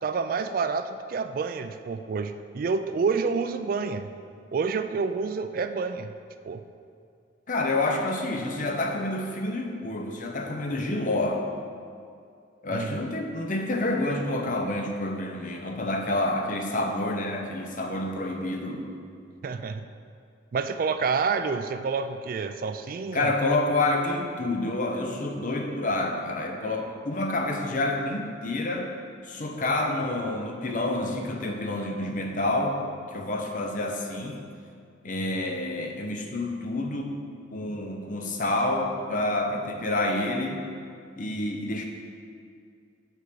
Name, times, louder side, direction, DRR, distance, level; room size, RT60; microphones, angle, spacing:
voice 1, 0.0-4.1 4.5-6.1 6.4-6.6 12.7-13.0 19.4-19.9 20.5-23.3, right 5 dB, 45° right, 9 dB, 0.3 m, -28 dB
voice 2, 7.5-11.4 12.6-18.8 23.1-28.9 29.2-32.8 33.1-34.4 35.0-37.2 37.5-40.6 41.2-41.9, left 2 dB, 40° left, 2 dB, 0.8 m, -28 dB
6.6 x 4.7 x 6.8 m, 2.3 s
head